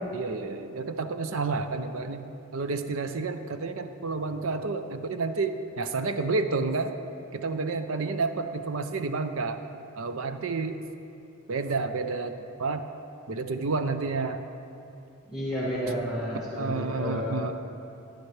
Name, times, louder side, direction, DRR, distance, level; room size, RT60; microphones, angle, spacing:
voice 1, 0.1-6.9 7.3-9.6 10.0-10.8 11.5-12.3 12.6-12.9 13.3-14.4 16.5-17.5, right 3 dB, 70° right, 9 dB, 0.6 m, -30 dB
voice 2, 15.3-17.4, equal, ahead, -10 dB, 2.1 m, -31 dB
14.0 x 10.5 x 3.2 m, 2.8 s
head